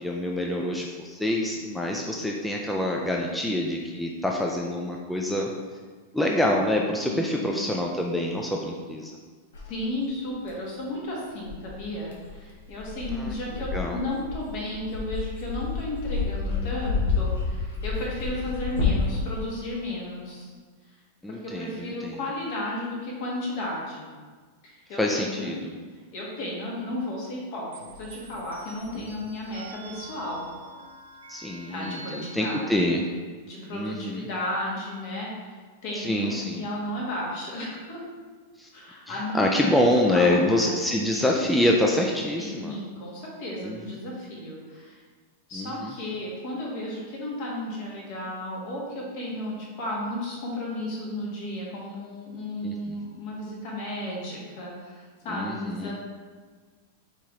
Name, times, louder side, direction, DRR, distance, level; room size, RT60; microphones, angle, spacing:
voice 1, 0.0-5.5 6.1-9.1 13.1-13.3 13.7-14.0 21.2-22.2 25.0-25.7 29.0-29.1 31.3-33.0 33.7-34.2 36.0-36.7 38.6-38.7 39.1-42.8 43.6-44.0 45.5-45.9 52.6-53.0 55.3-55.9, left 1 dB, 5° left, -1 dB, 0.4 m, -26 dB
voice 2, 7.0-7.6 9.6-20.5 21.3-24.1 24.6-25.5 26.1-27.7 27.9-30.4 31.7-32.7 33.4-35.5 35.8-38.0 38.7-39.7 40.1-40.7 42.4-45.0 45.5-55.9, left 1 dB, 55° left, -3 dB, 1.5 m, -34 dB
Dog, 9.5-9.7 10.5-10.6 11.4-19.4, left 4 dB, 80° left, 0.9 m, -29 dB
sound 1, 27.7-32.6, right 2 dB, 90° right, 0.6 m, -45 dB
4.4 x 3.6 x 3.1 m, 1.5 s
hypercardioid pair, 100°, 0 cm